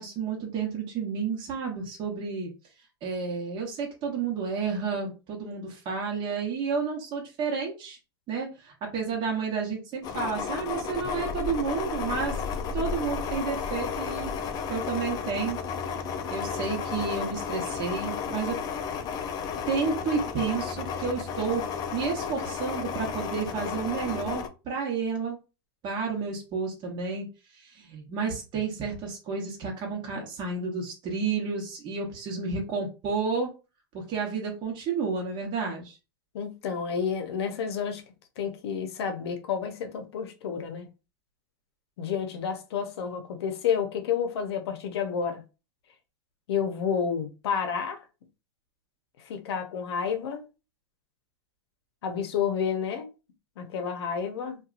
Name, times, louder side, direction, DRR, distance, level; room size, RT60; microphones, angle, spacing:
voice 1, 0.0-2.5 3.0-8.0 8.3-12.4 12.7-14.3 14.7-15.6 16.1-18.6 19.7-21.6 21.9-25.4 25.8-27.3 27.5-33.5 33.9-36.0, right 5 dB, 35° right, 0.9 m, -31 dB
sound 1, 10.0-24.5, left 6 dB, 30° left, 0.4 m, -33 dB
voice 2, 36.3-38.0 38.4-40.9 42.0-45.4 46.5-48.0 49.2-50.4 52.0-53.1 53.6-54.6, left 7 dB, 75° left, 0.6 m, -30 dB
2.7 x 2.3 x 2.4 m
hypercardioid pair, 125°, 14 cm